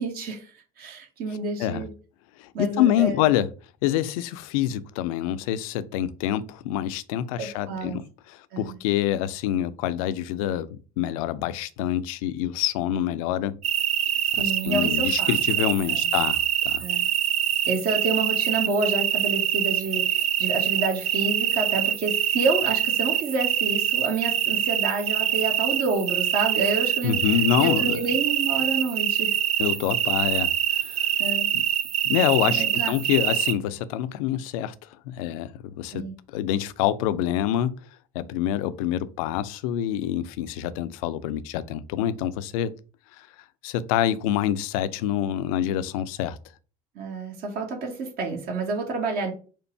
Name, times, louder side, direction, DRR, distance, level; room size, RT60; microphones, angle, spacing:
voice 1, 0.0-1.9 2.5-3.2 7.4-8.0 8.5-8.8 14.4-15.3 15.9-16.1 16.8-17.1 17.7-27.2 27.6-29.4 31.2-31.5 32.5-32.9 35.9-36.1 46.9-49.3, right 3 dB, 50° right, 1.3 m, -29 dB
voice 2, 2.4-3.5 3.8-13.5 14.3-16.4 16.6-16.8 27.0-28.0 29.6-30.5 30.8-31.0 31.5-31.6 32.0-34.7 35.1-37.7 38.1-42.7 43.2-43.3 43.6-46.4, left 11 dB, 60° left, 0.4 m, -26 dB
sound 1, 13.6-33.5, right 10 dB, 35° right, 0.5 m, -25 dB
4.4 x 2.5 x 4.4 m
figure-of-eight pair, 65°, 20 cm